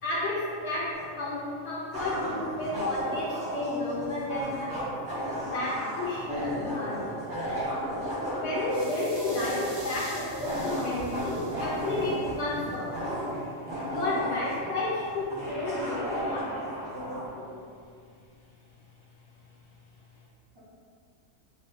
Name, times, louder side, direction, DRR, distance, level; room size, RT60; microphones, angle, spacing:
voice 1, 0.0-5.0 5.5-7.1 8.3-13.3 13.8-16.5 16.9-17.5, left 2 dB, 65° left, -5 dB, 0.7 m, -32 dB
sound 1, 0.9-1.0 1.9-17.3, equal, 60° right, 1.0 m, -35 dB
sound 2, 8.7-12.7, right 1 dB, 80° right, 1.1 m, -46 dB
voice 2, 13.3-14.0 15.4-17.4 20.5-20.6, equal, 40° right, -10 dB, 0.3 m, -44 dB
3.0 x 2.1 x 3.2 m, 2.3 s
omnidirectional pair, 1.4 m